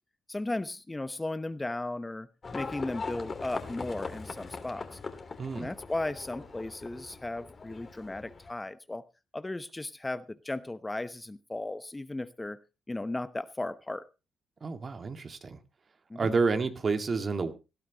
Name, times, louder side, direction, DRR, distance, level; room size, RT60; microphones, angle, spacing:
voice 1, 0.3-2.3 2.5-5.0 5.5-9.0 9.3-12.6 12.9-14.1 16.1-16.3, left 2 dB, 20° left, 13 dB, 0.9 m, -36 dB
Livestock farm animals working animals, 2.4-8.5, left 4 dB, 45° left, 2.9 m, -41 dB
voice 2, 5.4-5.7 14.6-15.6 16.2-17.5, right 4 dB, 45° right, 7 dB, 2.0 m, -29 dB
18.5 x 12.5 x 3.0 m, 0.29 s
supercardioid pair, 60°, 0 cm